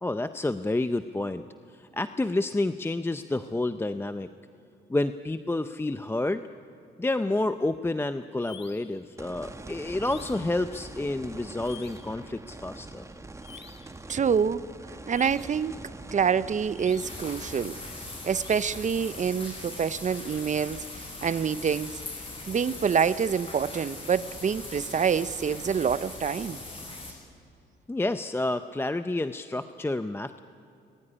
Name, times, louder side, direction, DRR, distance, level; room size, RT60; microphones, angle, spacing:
voice 1, 0.0-4.3 4.9-6.4 7.0-13.1 27.9-30.4, left 2 dB, 10° left, 0.6 m, -29 dB
sound 1, 8.4-9.0 10.0-10.6 11.6-12.2 13.4-14.0 15.1-15.6 16.7-17.3 18.4-18.9, left 8 dB, 65° left, 2.2 m, -49 dB
sound 2, 9.2-21.5 22.0-22.1 25.4-25.5, right 2 dB, 15° right, 1.2 m, -45 dB
voice 2, 14.1-14.6 15.1-15.8 16.1-17.8 18.2-22.0 22.5-26.6, right 7 dB, 40° right, 0.7 m, -26 dB
sound 3, 17.0-27.1, left 2 dB, 30° left, 6.2 m, -40 dB
24.5 x 21.0 x 10.0 m
cardioid pair, 90°, 20 cm